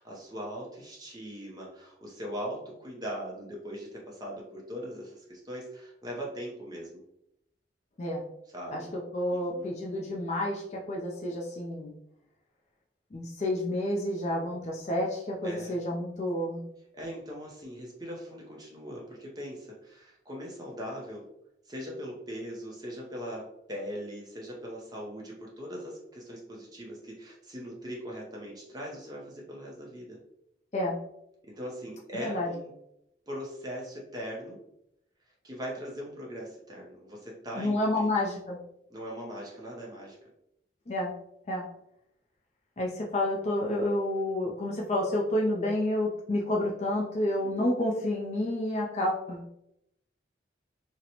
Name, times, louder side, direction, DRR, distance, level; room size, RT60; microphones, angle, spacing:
voice 1, 0.0-7.0 8.5-9.0 9.3-9.7 15.4-15.8 16.9-21.3 21.7-30.2 31.4-32.7 33.3-34.6 35.4-38.1 38.9-40.2 47.2-47.6, equal, 20° right, -3 dB, 0.6 m, -40 dB
voice 2, 9.1-11.9 13.1-16.6 30.7-31.0 32.2-32.5 37.6-38.6 40.9-41.1 41.5-41.7 42.8-49.6, left 1 dB, 40° left, -2 dB, 0.4 m, -29 dB
4.0 x 2.1 x 2.8 m, 0.79 s
head